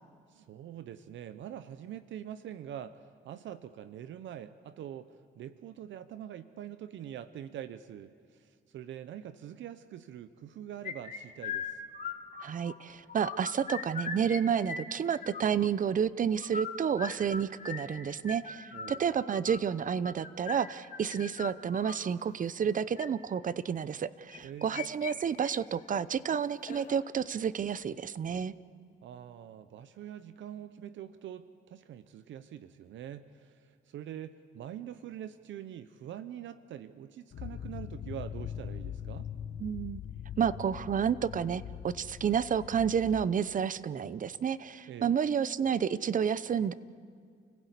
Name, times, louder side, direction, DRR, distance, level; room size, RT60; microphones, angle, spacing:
voice 1, 0.3-11.8 18.7-19.2 24.4-24.9 29.0-39.3 44.9-45.1, right 10 dB, 75° right, 13 dB, 0.8 m, -44 dB
sound 1, 10.8-12.7 13.1-14.4 14.6-15.7 16.4-22.0 22.7-23.1 24.3-25.1 25.4-25.5 25.9-26.0 26.6-27.0, left 6 dB, 40° left, 2.2 m, -40 dB
voice 2, 12.4-28.5 39.6-40.0 40.4-46.7, right 7 dB, 40° right, 17 dB, 0.7 m, -30 dB
sound 2, 37.3-43.2, left 9 dB, 60° left, 0.9 m, -42 dB
29.5 x 16.5 x 8.3 m, 2.2 s
cardioid pair, 90°, 20 cm